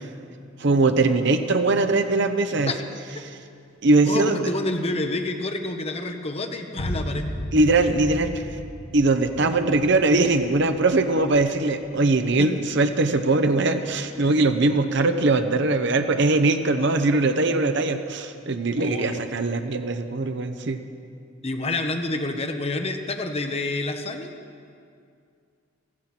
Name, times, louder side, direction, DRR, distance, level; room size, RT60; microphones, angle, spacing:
voice 1, 0.6-2.7 3.8-4.4 7.5-8.5 8.9-20.8, right 2 dB, 60° right, 8 dB, 0.8 m, -21 dB
voice 2, 4.0-7.3 12.4-12.5 18.8-19.2 21.4-24.3, left 2 dB, 30° left, 5 dB, 1.1 m, -28 dB
sound 1, 6.8-14.2, equal, 80° left, 1.5 m, -36 dB
15.0 x 14.5 x 6.0 m, 2.3 s
head